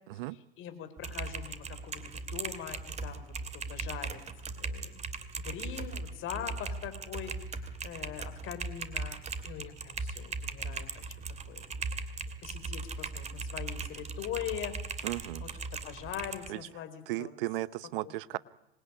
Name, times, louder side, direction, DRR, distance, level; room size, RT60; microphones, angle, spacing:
voice 1, 0.3-4.2 4.6-5.0 5.3-11.0 11.4-11.6 12.4-15.1 15.4-17.3 18.0-18.4, left 10 dB, 45° left, 9 dB, 4.8 m, -42 dB
Typing, 1.0-16.5, right 4 dB, 20° right, 2.5 m, -39 dB
voice 2, 15.0-15.4 16.5-16.6 17.1-18.4, right 18 dB, 60° right, 18 dB, 0.9 m, -35 dB
26.0 x 20.5 x 9.9 m, 0.84 s
hypercardioid pair, 100°, 30 cm